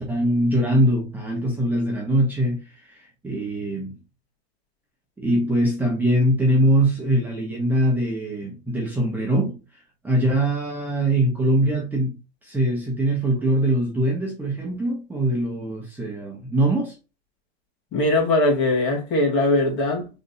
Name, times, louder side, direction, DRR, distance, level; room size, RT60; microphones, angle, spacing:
voice 1, 0.0-4.0 5.2-9.5 10.0-16.9, right 1 dB, 5° right, 1.1 m, -22 dB
voice 2, 17.9-20.1, left 2 dB, 40° left, 2.5 m, -20 dB
4.1 x 3.8 x 2.3 m
hypercardioid pair, 125°, 31 cm